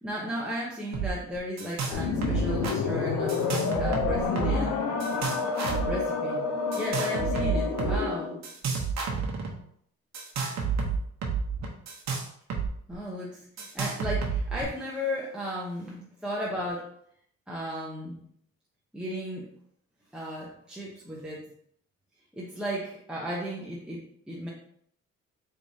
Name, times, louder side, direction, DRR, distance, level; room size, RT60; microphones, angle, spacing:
voice 1, 0.0-3.5 3.8-4.9 5.8-8.4 12.9-16.9 17.5-18.2 18.9-19.5 20.1-21.4 22.3-24.5, equal, 5° right, -6 dB, 0.9 m, -35 dB
sound 1, 0.9-1.1 1.4-2.0 2.2-2.8 3.3-4.7 5.0-5.9 6.7-8.0 8.4-9.5 10.1-12.7 12.9-13.0 13.6-14.6, right 5 dB, 60° right, 1.0 m, -30 dB
sound 2, 1.9-8.4, left 5 dB, 75° left, 0.8 m, -29 dB
4.3 x 3.5 x 2.7 m, 0.67 s
cardioid pair, 90°, 30 cm